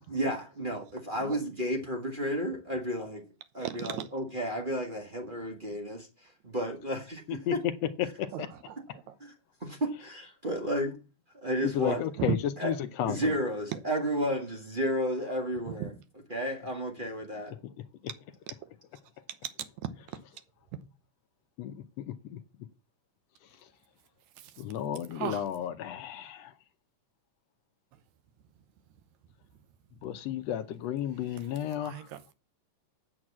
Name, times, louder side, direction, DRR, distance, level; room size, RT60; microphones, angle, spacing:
voice 1, 0.1-3.2 3.5-7.6 9.2-9.3 9.6-10.9 11.3-12.0 12.6-12.7 13.0-15.9 16.3-17.5, equal, 30° right, 0.9 m, -32 dB
voice 2, 3.6-4.1 8.3-9.1 12.2-12.4 15.8-15.9 19.8-19.9 20.7-20.8 24.4-24.6 25.1-25.5 31.8-32.3, right 10 dB, 70° right, 2.1 m, -36 dB
voice 3, 7.3-7.7 8.0-8.5 11.6-12.4 12.6-13.2 21.6-22.4 24.6-26.5 30.0-32.1, left 10 dB, 75° left, 1.5 m, -33 dB
8.8 x 6.3 x 7.4 m
omnidirectional pair, 3.6 m